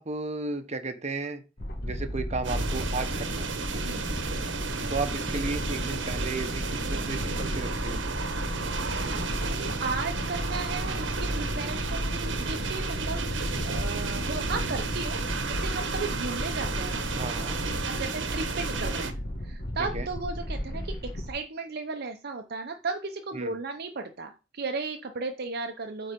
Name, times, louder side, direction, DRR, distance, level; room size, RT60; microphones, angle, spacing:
voice 1, 0.0-1.4 1.8-3.5 4.9-8.0 17.2-17.6 19.9-20.1 23.3-23.6, right 3 dB, 40° right, 6 dB, 1.1 m, -34 dB
sound 1, 1.6-21.3, equal, 55° left, 1.7 m, -34 dB
sound 2, 2.4-19.1, right 4 dB, 75° right, 1.2 m, -33 dB
voice 2, 8.5-15.2 15.5-17.0 17.9-19.1 19.4-26.1, right 4 dB, 55° right, 5 dB, 0.8 m, -35 dB
8.7 x 4.3 x 5.2 m, 0.29 s
head